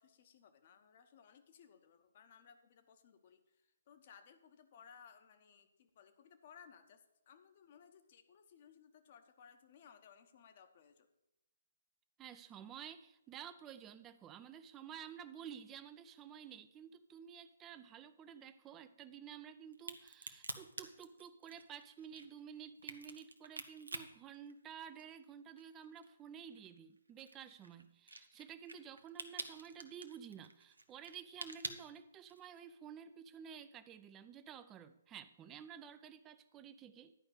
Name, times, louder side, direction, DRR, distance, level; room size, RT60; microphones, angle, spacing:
voice 1, 0.0-11.1, left 7 dB, 40° left, 8 dB, 1.0 m, -61 dB
voice 2, 12.2-37.1, right 8 dB, 15° right, 11 dB, 0.5 m, -52 dB
Crack, 19.7-25.2 25.6-32.6, right 2 dB, 80° right, 0.9 m, -48 dB
11.0 x 5.1 x 7.9 m, 0.90 s
figure-of-eight pair, 135°, 0 cm